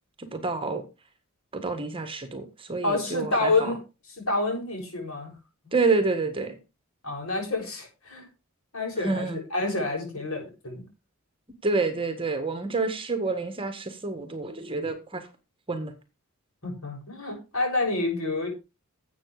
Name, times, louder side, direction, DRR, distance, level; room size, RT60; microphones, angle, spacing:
voice 1, 0.2-0.8 1.5-3.7 5.7-6.6 9.0-9.4 11.6-15.3 15.7-15.9, right 3 dB, 25° right, 1.7 m, -28 dB
voice 2, 2.8-3.8 4.2-5.3 5.6-5.7 7.0-8.3 8.7-10.9 16.6-18.5, left 2 dB, 70° left, 6.7 m, -28 dB
12.0 x 8.1 x 4.9 m
head